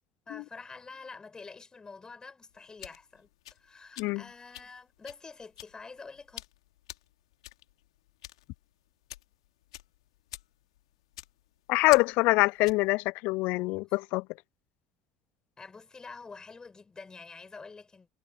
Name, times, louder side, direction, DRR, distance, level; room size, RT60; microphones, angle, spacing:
voice 1, 0.3-6.4 15.6-18.1, left 4 dB, 25° left, 5.5 m, -47 dB
sound 1, 2.5-12.9, left 15 dB, 80° left, 2.7 m, -48 dB
voice 2, 11.7-14.2, left 23 dB, 65° left, 0.3 m, -25 dB
hypercardioid pair, 70°, 3 cm